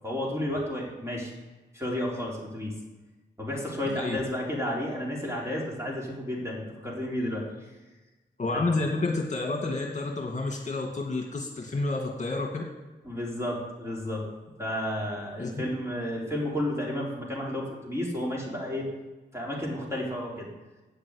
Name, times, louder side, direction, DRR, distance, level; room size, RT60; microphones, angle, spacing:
voice 1, 0.0-1.3 1.7-2.7 3.4-7.4 8.5-8.7 13.0-14.2 14.6-18.9 19.3-20.5, left 1 dB, 15° right, -3 dB, 4.3 m, -32 dB
voice 2, 8.4-12.6 15.4-15.5, left 3 dB, 40° left, 1 dB, 2.0 m, -29 dB
8.8 x 6.8 x 8.4 m, 1.2 s
cardioid pair, 50°, 19 cm